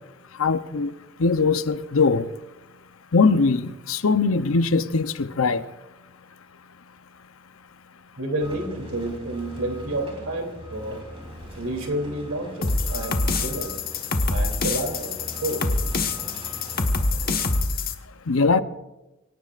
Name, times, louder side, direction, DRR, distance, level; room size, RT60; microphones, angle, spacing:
voice 1, 0.4-0.9 1.2-2.3 3.1-5.6 18.3-18.6, left 4 dB, 70° left, 0.7 m, -21 dB
voice 2, 8.2-11.1 11.6-13.9 14.3-15.8, right 1 dB, 75° right, 3.1 m, -30 dB
sound 1, 8.4-17.6, equal, 25° right, 3.9 m, -41 dB
sound 2, 12.6-17.9, left 3 dB, 45° left, 1.3 m, -25 dB
24.5 x 18.0 x 2.5 m
head